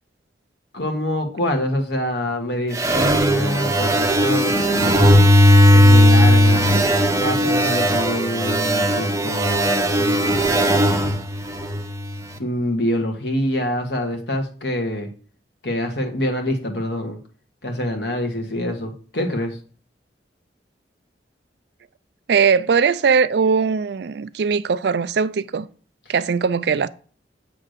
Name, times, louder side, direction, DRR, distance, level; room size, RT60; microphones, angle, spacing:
voice 1, 0.7-5.2 5.7-6.6 7.2-11.2 12.4-15.1 15.6-17.2 17.6-19.6, left 1 dB, 65° left, 1.5 m, -25 dB
sound 1, 2.7-12.2, equal, 15° right, 0.7 m, -17 dB
voice 2, 22.3-25.7 26.1-26.9, right 5 dB, 65° right, 0.4 m, -20 dB
7.7 x 3.6 x 6.5 m
head